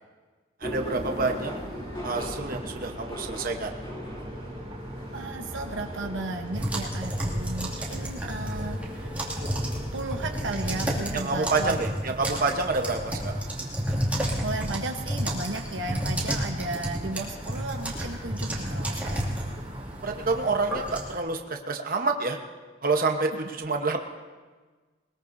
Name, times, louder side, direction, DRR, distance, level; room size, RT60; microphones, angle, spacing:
sound 1, 0.6-11.7, equal, 25° left, 3.0 m, -40 dB
voice 1, 0.6-1.5 2.0-3.7 11.1-13.4 20.0-22.4 22.8-24.0, right 3 dB, 50° right, 3 dB, 1.1 m, -28 dB
sound 2, 1.0-20.4, right 1 dB, 25° right, 3.0 m, -43 dB
voice 2, 5.1-9.1 9.9-11.8 14.4-19.2, right 2 dB, 75° right, 3 dB, 1.0 m, -35 dB
sound 3, 6.5-21.1, equal, 10° right, 2.4 m, -31 dB
21.0 x 21.0 x 2.7 m, 1.4 s
head